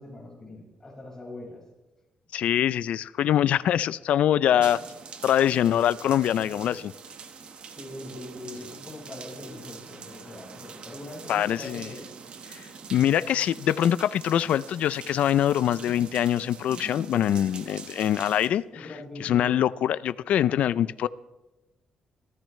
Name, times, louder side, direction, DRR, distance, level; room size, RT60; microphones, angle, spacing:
voice 1, 0.0-1.6 4.5-4.6 6.5-6.8 7.8-12.1 16.7-17.7 18.7-19.6, left 2 dB, 20° left, -1 dB, 5.2 m, -42 dB
voice 2, 2.3-4.8 5.2-6.9 11.3-11.9 12.5-18.6 19.2-21.1, left 10 dB, 75° left, 18 dB, 0.4 m, -24 dB
sound 1, 4.6-18.5, right 6 dB, 55° right, 1.4 m, -44 dB
28.5 x 14.0 x 3.2 m, 1.1 s
cardioid pair, 125°, 2 cm